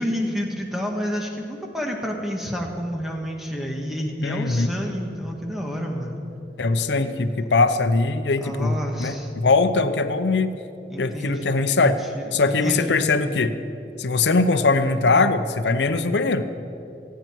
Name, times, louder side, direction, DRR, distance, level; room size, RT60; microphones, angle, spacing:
voice 1, 0.0-6.2 8.4-9.3 10.9-11.5 12.1-13.1, equal, ahead, 0 dB, 1.5 m, -29 dB
voice 2, 4.2-4.7 6.6-10.5 11.0-12.0 12.3-13.6 14.0-16.4, left 3 dB, 80° left, 9 dB, 0.7 m, -21 dB
24.0 x 9.4 x 4.6 m, 2.8 s
head